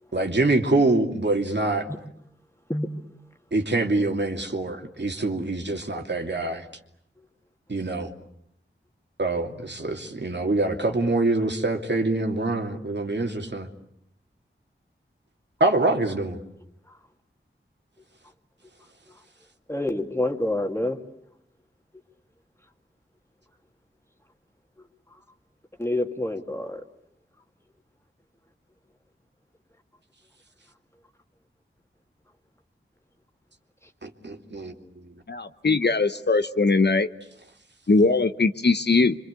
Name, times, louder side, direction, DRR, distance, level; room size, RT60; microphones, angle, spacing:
voice 1, 0.1-1.9 3.5-6.7 7.7-8.1 9.2-13.7 15.6-16.4 34.0-34.7, right 2 dB, 55° right, 3 dB, 2.7 m, -25 dB
voice 2, 19.7-21.0 25.8-26.8, left 1 dB, 10° left, 4 dB, 2.4 m, -27 dB
voice 3, 35.3-37.1 37.9-39.2, left 3 dB, 55° left, 10 dB, 1.0 m, -21 dB
27.0 x 25.0 x 8.3 m, 0.74 s
wide cardioid pair, 70°, 21 cm